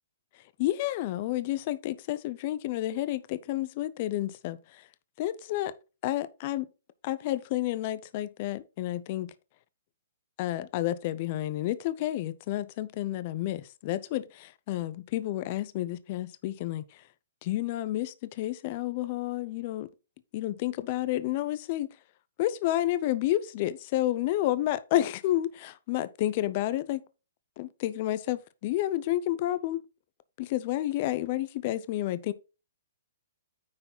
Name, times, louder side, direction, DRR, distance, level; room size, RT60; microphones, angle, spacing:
voice 1, 0.6-4.8 5.2-5.7 6.0-6.7 7.0-9.3 10.4-17.0 17.4-19.9 20.3-21.9 22.4-27.0 27.6-29.8 30.4-32.3, left 14 dB, 40° left, 0.6 m, -30 dB
9.5 x 4.7 x 3.9 m
hypercardioid pair, 145°, 0 cm